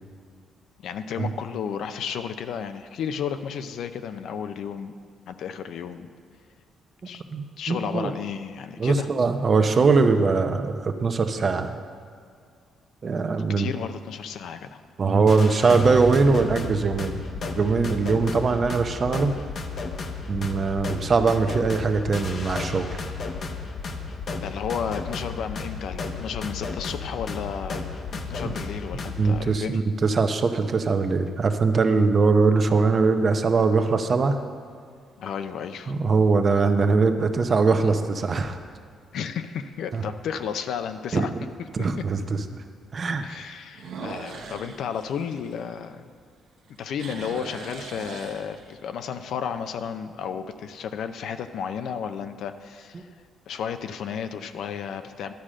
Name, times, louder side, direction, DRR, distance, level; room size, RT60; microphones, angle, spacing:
voice 1, 0.8-4.9 5.3-6.1 7.0-7.2 7.6-9.1 13.6-14.8 24.4-27.8 28.1-29.8 35.2-35.9 39.1-41.3 43.2-46.1 46.8-53.1 53.5-55.3, left 7 dB, 75° left, 9 dB, 0.5 m, -33 dB
voice 2, 7.3-8.1 8.8-11.8 13.0-13.7 15.0-17.2 17.6-19.3 20.3-23.0 29.2-34.4 35.9-38.6 39.9-40.0 41.1-41.3 41.7-42.4 42.9-43.2 52.9-53.0, right 4 dB, 40° right, 7 dB, 0.7 m, -21 dB
sound 1, 15.3-29.4, left 4 dB, 55° left, 0.9 m, -33 dB
sound 2, 30.4-30.7 31.4-31.5 36.7-37.2 37.7-37.8 38.3-38.4 38.7-38.8 40.3-40.4 43.7-46.2 46.6-48.9, right 4 dB, 75° right, 1.0 m, -40 dB
11.5 x 4.9 x 7.5 m, 2.2 s
cardioid pair, 90°, 0 cm